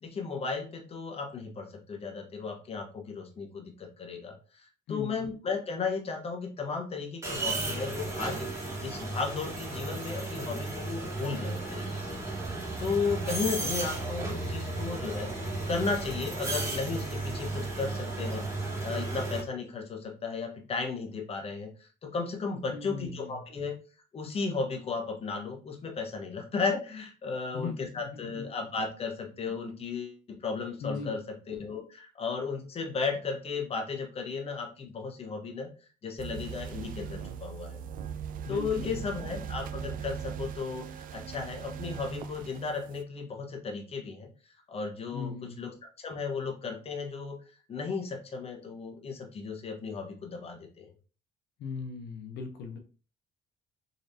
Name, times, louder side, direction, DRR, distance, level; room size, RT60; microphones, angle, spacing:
voice 1, 0.0-23.7 24.1-31.2 31.5-35.7 36.0-37.8 38.5-44.3 44.7-47.4 47.7-50.9, left 4 dB, 35° left, 2 dB, 1.1 m, -35 dB
voice 2, 4.9-5.3 13.6-13.9 22.7-23.4 27.5-28.5 30.8-31.2 38.4-39.3 45.1-45.6 51.6-52.8, left 4 dB, 75° left, 3 dB, 0.8 m, -39 dB
sound 1, 7.2-19.4, right 2 dB, 15° right, 1.6 m, -34 dB
sound 2, 36.2-43.0, right 8 dB, 55° right, 0.4 m, -40 dB
4.0 x 3.1 x 2.7 m, 0.36 s
cardioid pair, 110°, 17 cm